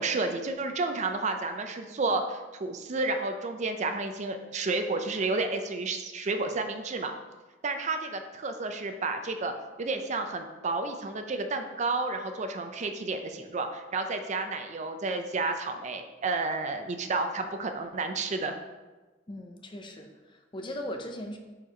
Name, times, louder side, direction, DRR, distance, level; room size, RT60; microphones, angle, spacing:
voice 1, 0.0-7.1 7.6-18.6, right 3 dB, 40° right, 6 dB, 0.5 m, -31 dB
voice 2, 19.3-21.4, left 1 dB, 25° left, 4 dB, 0.6 m, -39 dB
4.9 x 4.4 x 5.0 m, 1.2 s
head